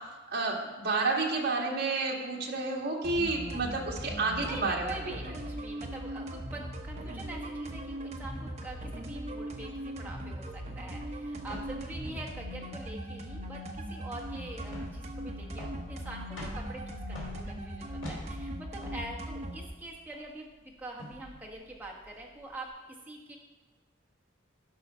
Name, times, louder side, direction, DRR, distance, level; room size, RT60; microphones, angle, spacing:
voice 1, 0.3-4.9, right 3 dB, 50° right, -1 dB, 1.7 m, -30 dB
sound 1, 3.0-19.7, right 1 dB, 35° right, 0.9 m, -39 dB
voice 2, 4.4-20.5 20.8-22.7 23.0-23.4, right 2 dB, 10° right, -3 dB, 1.3 m, -44 dB
sound 2, 11.4-22.6, equal, 65° left, 2.7 m, -47 dB
11.0 x 5.7 x 5.6 m, 1.2 s
head